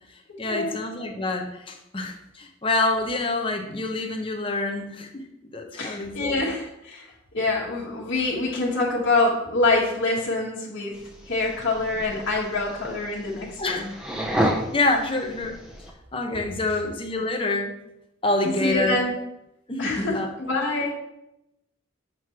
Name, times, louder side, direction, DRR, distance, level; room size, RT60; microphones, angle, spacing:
voice 1, 0.4-5.2 5.5-6.4 13.6-13.8 14.7-15.6 16.1-17.7 18.2-19.0 19.7-20.3, left 2 dB, 25° left, 3 dB, 0.8 m, -27 dB
voice 2, 5.7-7.0 7.3-11.0 11.3-13.9 16.3-16.4 18.4-19.1 19.8-20.9, left 2 dB, 70° left, -6 dB, 1.4 m, -25 dB
sound 1, 10.9-15.9, equal, 5° right, 0.7 m, -31 dB
7.6 x 3.1 x 5.8 m, 0.87 s
head